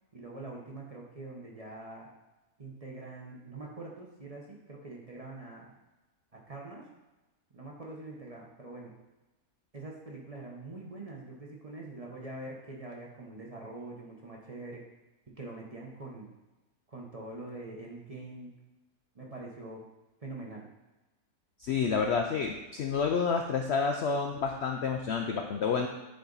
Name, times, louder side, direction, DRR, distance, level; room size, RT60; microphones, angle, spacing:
voice 1, 0.1-2.1 2.6-5.7 6.3-6.9 7.5-8.9 9.7-14.8 15.4-16.3 16.9-18.5 19.1-19.8 20.2-20.7, right 2 dB, 25° right, -2 dB, 0.9 m, -44 dB
voice 2, 21.6-25.9, left 5 dB, 85° left, 3 dB, 0.5 m, -29 dB
8.9 x 4.2 x 3.9 m, 1.1 s
omnidirectional pair, 1.7 m